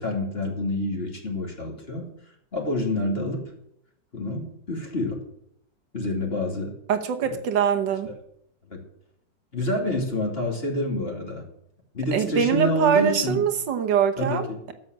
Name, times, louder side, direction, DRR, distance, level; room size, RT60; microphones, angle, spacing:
voice 1, 0.0-2.1 2.5-3.4 4.1-5.2 5.9-6.7 7.2-7.4 8.0-8.1 8.7-8.8 9.5-11.5 11.9-13.4 14.2-14.6, left 1 dB, 30° left, 0 dB, 3.0 m, -28 dB
voice 2, 6.9-8.1 12.1-14.7, right 8 dB, 75° right, 7 dB, 1.8 m, -23 dB
12.5 x 7.4 x 7.8 m, 0.72 s
omnidirectional pair, 2.0 m